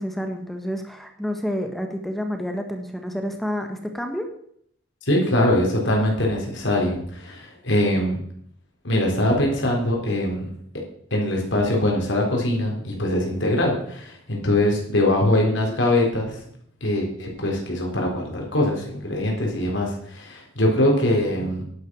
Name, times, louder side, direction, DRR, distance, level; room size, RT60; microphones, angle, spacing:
voice 1, 0.0-4.3, equal, ahead, 4 dB, 1.4 m, -29 dB
voice 2, 5.1-8.2 8.8-10.5 11.1-16.4 16.8-21.6, left 1 dB, 90° left, 0 dB, 3.8 m, -22 dB
11.0 x 9.6 x 6.1 m, 0.67 s
head